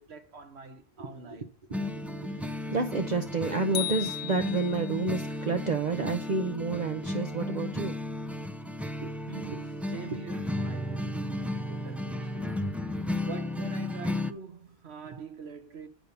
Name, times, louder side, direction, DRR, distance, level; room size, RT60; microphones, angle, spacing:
voice 1, 0.0-1.5 9.1-12.4 13.2-15.9, right 5 dB, 80° right, 1.5 m, -44 dB
sound 1, 1.7-14.3, left 1 dB, ahead, 0.5 m, -34 dB
voice 2, 2.1-8.0 9.0-9.1 12.4-12.5, right 3 dB, 45° right, 0.9 m, -30 dB
sound 2, 3.7-5.1, left 13 dB, 85° left, 0.9 m, -35 dB
9.2 x 5.4 x 6.8 m
omnidirectional pair, 1.1 m